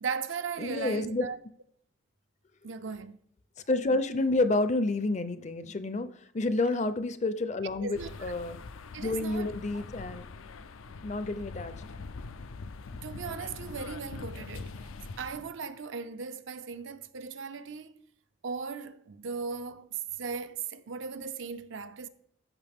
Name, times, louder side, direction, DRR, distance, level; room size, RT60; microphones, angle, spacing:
voice 1, 0.0-1.4 2.6-3.2 6.7-6.8 7.8-8.3 8.9-9.8 12.9-14.7 15.2-17.9 18.4-22.1, right 5 dB, 70° right, 0.5 m, -37 dB
voice 2, 0.6-1.3 3.7-8.6 9.0-10.3 11.0-11.9, left 2 dB, 35° left, 0.5 m, -29 dB
sound 1, 7.9-15.3, left 4 dB, 90° left, 0.5 m, -43 dB
14.0 x 5.6 x 3.5 m
head